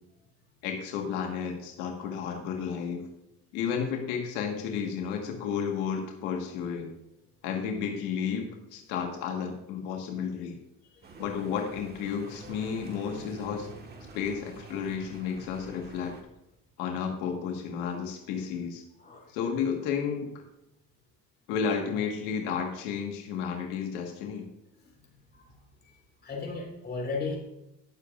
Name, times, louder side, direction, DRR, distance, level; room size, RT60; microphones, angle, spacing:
voice 1, 0.6-3.0 3.5-6.9 7.4-10.6 11.2-13.7 14.1-16.2 16.8-18.8 19.3-20.3 21.5-24.5, left 7 dB, 90° left, 2 dB, 1.6 m, -32 dB
voice 2, 10.8-11.1 19.0-19.3 24.8-25.5 25.8-27.4, left 4 dB, 35° left, 0 dB, 4.1 m, -37 dB
sound 1, 11.0-16.2, right 3 dB, 35° right, 1.6 m, -47 dB
17.5 x 7.0 x 2.5 m, 0.87 s
cardioid pair, 110°, 30 cm